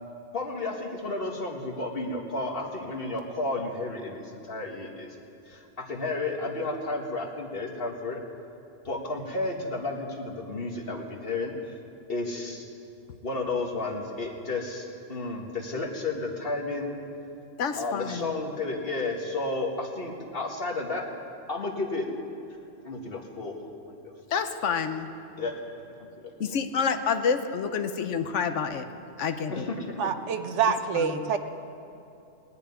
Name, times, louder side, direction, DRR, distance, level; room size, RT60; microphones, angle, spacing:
voice 1, 0.3-5.1 5.5-8.2 8.9-11.5 12.1-12.7 13.2-16.9 17.7-21.0 21.5-22.1 22.8-23.6 23.9-24.1 25.4-25.5 26.0-26.6 29.5-30.0, left 2 dB, 50° left, 1 dB, 1.8 m, -32 dB
voice 2, 17.6-18.4 24.3-25.1 26.4-28.8 29.2-29.7 30.9-31.3, left 6 dB, 75° left, 8 dB, 1.1 m, -28 dB
voice 3, 30.0-31.4, right 6 dB, 75° right, 9 dB, 1.1 m, -26 dB
20.0 x 6.7 x 9.6 m, 2.8 s
omnidirectional pair, 1.3 m